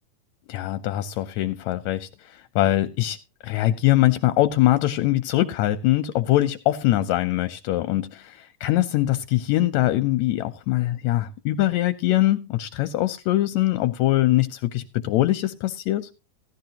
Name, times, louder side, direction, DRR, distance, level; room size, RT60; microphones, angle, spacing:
voice 1, 0.5-3.2 3.4-16.1, left 15 dB, 75° left, 1.8 m, -22 dB
16.5 x 12.0 x 2.9 m
omnidirectional pair, 3.7 m